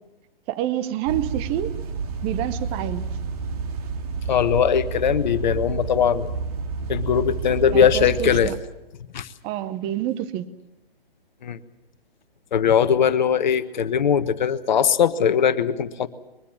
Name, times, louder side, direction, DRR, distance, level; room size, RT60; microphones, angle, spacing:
voice 1, 0.5-1.7 2.2-3.1 7.7-8.6 9.4-10.5, right 12 dB, 20° right, 0.9 m, -27 dB
sound 1, 1.1-8.5, right 4 dB, 40° right, 2.1 m, -30 dB
voice 2, 4.3-6.3 6.9-8.5 9.1-9.3 11.4-11.6 12.5-16.1, left 8 dB, 50° left, 1.4 m, -20 dB
22.5 x 22.0 x 7.3 m
figure-of-eight pair, 130°, 29 cm